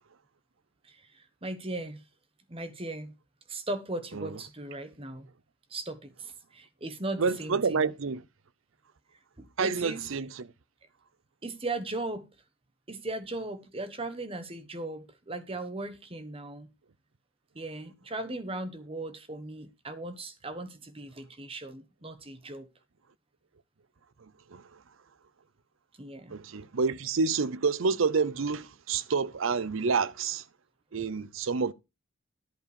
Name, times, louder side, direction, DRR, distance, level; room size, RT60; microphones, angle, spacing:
voice 1, 0.8-2.0 2.5-3.1 3.5-5.3 5.7-7.9 9.4-10.0 11.4-12.3 12.9-16.7 17.5-22.7 26.0-26.3, right 2 dB, 25° right, 1.2 m, -38 dB
voice 2, 7.2-8.2 9.6-10.5 24.2-24.8 26.3-30.5 30.9-31.7, right 5 dB, 75° right, 0.6 m, -29 dB
11.0 x 4.9 x 6.8 m
head